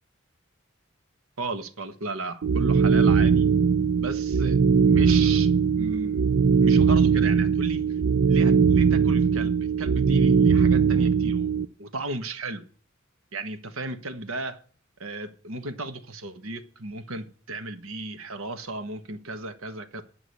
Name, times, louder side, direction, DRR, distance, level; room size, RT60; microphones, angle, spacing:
voice 1, 1.4-3.5 4.0-5.5 5.8-6.2 6.6-7.8 8.3-12.6 13.3-14.6 15.0-20.0, right 2 dB, 85° right, 9 dB, 1.5 m, -34 dB
sound 1, 2.4-11.7, right 6 dB, 65° right, 0.5 m, -20 dB
9.9 x 6.1 x 8.5 m, 0.41 s
head